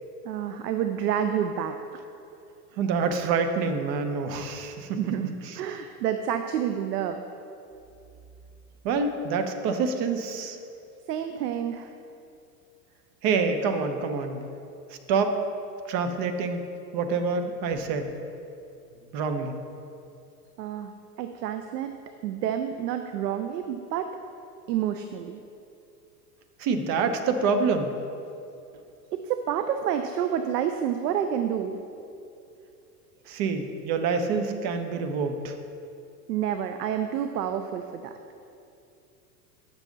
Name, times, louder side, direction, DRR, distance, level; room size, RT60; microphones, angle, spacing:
voice 1, 0.2-1.8 5.0-7.2 11.1-11.9 20.6-20.9 21.2-24.1 24.7-25.4 29.1-31.8 36.3-38.1, right 9 dB, 70° right, 8 dB, 0.6 m, -29 dB
voice 2, 2.8-5.0 5.4-5.5 8.8-10.6 13.2-14.4 15.1-15.4 15.9-16.6 16.9-18.1 19.1-19.6 26.6-27.9 33.3-35.5, right 4 dB, 45° right, 6 dB, 0.9 m, -26 dB
9.7 x 7.0 x 3.9 m, 2.6 s
hypercardioid pair, 90°, 50 cm